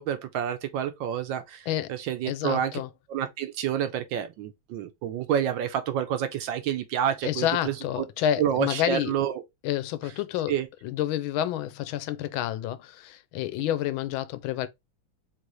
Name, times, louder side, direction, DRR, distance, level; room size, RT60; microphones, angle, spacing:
voice 1, 0.0-2.7 3.1-8.0 8.4-9.4 10.5-10.7, right 9 dB, 75° right, 1.3 m, -29 dB
voice 2, 2.2-2.9 7.2-9.1 9.6-10.5 10.8-14.7, left 11 dB, 85° left, 1.4 m, -29 dB
4.0 x 3.3 x 2.9 m
omnidirectional pair, 2.2 m